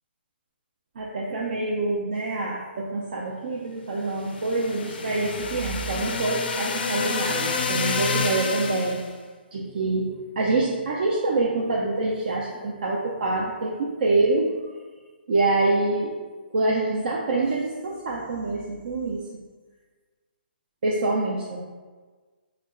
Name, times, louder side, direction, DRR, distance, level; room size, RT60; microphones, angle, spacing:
voice 1, 1.0-9.0 9.5-14.5 15.3-16.1 16.5-19.2 20.8-21.6, right 2 dB, 55° right, -3 dB, 0.4 m, -26 dB
sound 1, 4.2-9.1, left 5 dB, 60° left, 0.3 m, -29 dB
2.9 x 2.1 x 3.6 m, 1.4 s
hypercardioid pair, 160°, 6 cm